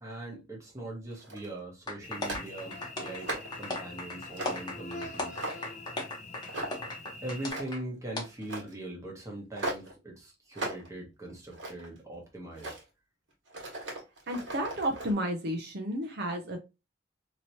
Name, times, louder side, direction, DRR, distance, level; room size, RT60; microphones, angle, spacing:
voice 1, 0.0-5.4 7.2-12.7, right 1 dB, 15° right, 1.1 m, -41 dB
sound 1, 1.1-1.6 2.2-2.5 3.0-3.6 4.3-4.7 5.1-5.8 6.5-6.9 7.3-7.9 8.4-8.7 9.6-9.9 10.5-10.9 11.3-12.0 12.5-12.8 13.5-15.1, right 1 dB, 80° right, 1.5 m, -38 dB
sound 2, 1.9-7.8 8.2-8.3, left 2 dB, 25° left, 0.9 m, -37 dB
Cricket / Buzz, 2.0-7.5, left 2 dB, 40° left, 0.6 m, -45 dB
voice 2, 14.3-16.6, equal, 60° right, 0.7 m, -32 dB
3.0 x 2.9 x 2.7 m
head